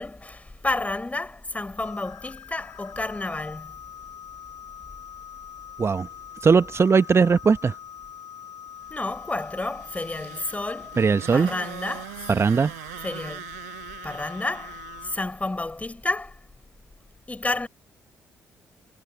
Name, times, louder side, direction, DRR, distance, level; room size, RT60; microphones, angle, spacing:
voice 1, 0.0-3.7 8.9-11.0 11.3-12.1 13.0-13.4 14.0-16.4 17.3-17.7, left 2 dB, 20° left, 4.7 m, -30 dB
sound 1, 1.8-15.2, left 9 dB, 55° left, 4.3 m, -43 dB
voice 2, 6.4-7.7 11.0-11.5 12.3-12.7, right 5 dB, 35° right, 1.2 m, -19 dB
Motorcycle, 9.3-15.4, right 25 dB, 75° right, 6.3 m, -42 dB
figure-of-eight pair, 40°, 8 cm